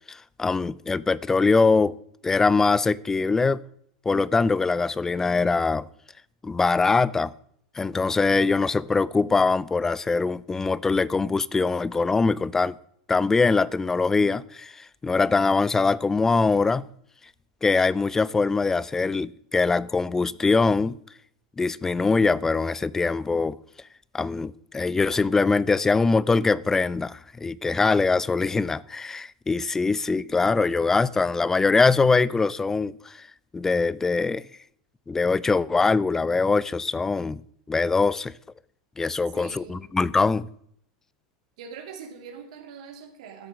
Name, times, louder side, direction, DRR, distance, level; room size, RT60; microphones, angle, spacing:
voice 1, 0.1-1.9 2.2-3.6 4.1-5.9 6.4-7.3 7.8-12.8 13.1-16.9 17.6-21.0 21.6-23.6 24.1-33.3 33.5-34.5 35.1-37.4 37.7-38.3 39.0-40.5, left 4 dB, 15° left, 0.4 m, -23 dB
voice 2, 39.3-39.9 41.6-43.5, right 6 dB, 80° right, 2.5 m, -43 dB
13.0 x 7.4 x 6.1 m
supercardioid pair, 125°, 3 cm